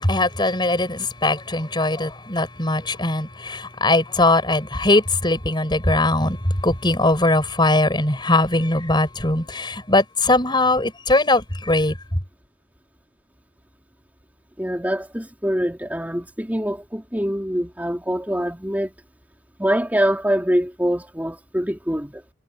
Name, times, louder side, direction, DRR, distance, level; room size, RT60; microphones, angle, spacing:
voice 1, 0.0-12.0, left 2 dB, 25° left, 7.5 m, -20 dB
voice 2, 14.6-18.9 19.6-22.2, equal, 10° right, 3.8 m, -24 dB
head